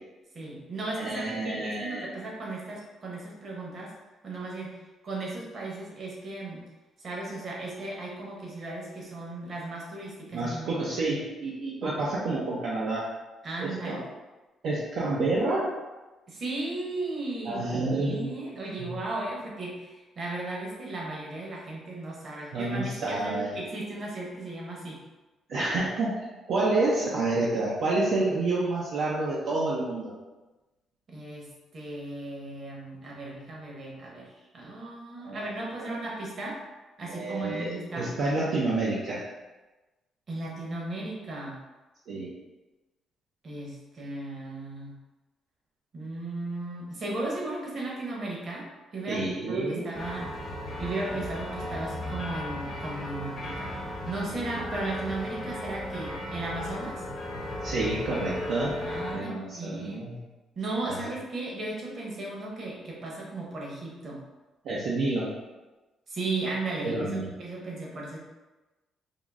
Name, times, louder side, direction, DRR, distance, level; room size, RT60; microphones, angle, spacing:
voice 1, 0.3-3.9 4.2-4.7 5.0-6.6 7.0-11.1 13.4-14.0 16.3-25.0 31.1-36.6 37.0-38.1 40.3-41.6 43.4-44.9 45.9-49.2 49.5-50.3 50.8-53.8 54.0-57.0 58.8-60.0 60.6-64.2 66.1-68.2, right 2 dB, 50° right, -3 dB, 1.1 m, -36 dB
voice 2, 1.0-2.1 10.3-13.1 13.6-14.0 14.6-15.7 17.4-18.3 18.8-18.9 22.5-23.5 25.5-26.2 26.5-30.1 35.2-35.5 35.8-35.9 37.1-39.3 42.1-42.3 49.1-49.9 57.6-58.8 59.1-60.2 60.8-61.0 64.6-65.3 66.8-67.3, right 2 dB, 70° right, -6 dB, 0.6 m, -29 dB
sound 1, 49.9-59.2, left 1 dB, 50° left, 0.9 m, -36 dB
3.7 x 2.0 x 3.5 m, 1.1 s
cardioid pair, 90°, 0 cm